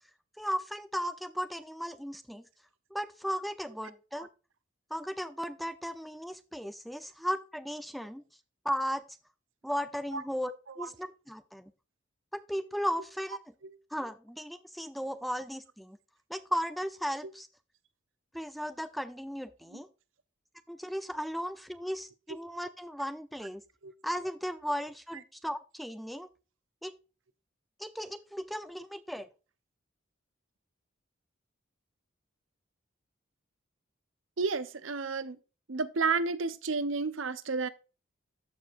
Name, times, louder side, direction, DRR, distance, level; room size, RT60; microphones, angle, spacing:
voice 1, 0.4-2.4 2.9-4.3 4.9-8.2 8.6-9.0 9.6-11.7 12.3-13.4 13.9-16.0 16.3-17.5 18.3-19.9 20.7-23.6 24.0-26.3 26.8-27.0 27.8-29.3, equal, ahead, 0.6 m, -36 dB
voice 2, 34.4-35.4 35.7-37.7, right 4 dB, 75° right, 0.8 m, -31 dB
14.0 x 4.9 x 2.5 m
head